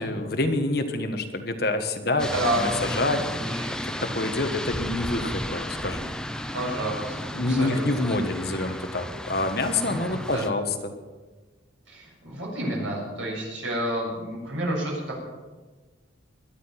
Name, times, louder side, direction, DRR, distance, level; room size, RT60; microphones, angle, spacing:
voice 1, 0.0-3.5 3.8-6.1 7.3-10.9, left 2 dB, 55° left, 6 dB, 1.4 m, -27 dB
voice 2, 2.1-3.7 6.5-8.0 9.9-10.4 11.9-15.2, right 1 dB, 85° right, -3 dB, 7.2 m, -30 dB
sound 1, 2.2-10.5, left 1 dB, 5° left, 0.5 m, -33 dB
22.5 x 10.0 x 5.9 m, 1.3 s
head